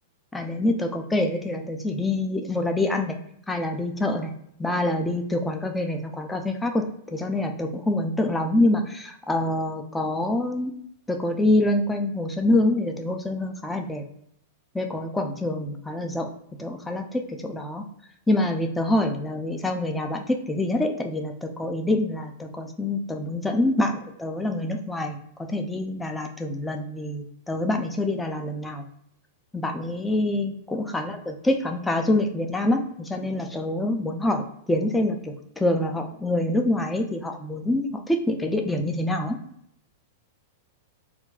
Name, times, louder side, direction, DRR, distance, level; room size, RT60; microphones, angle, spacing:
voice 1, 0.3-3.2 3.5-4.3 4.6-6.8 7.1-10.7 11.1-14.0 14.7-16.3 16.6-17.8 18.3-25.2 25.5-28.8 29.5-31.1 31.4-39.4, left 1 dB, 10° left, 4 dB, 0.4 m, -26 dB
2.3 x 2.2 x 3.5 m, 0.72 s
figure-of-eight pair, 100°, 0 cm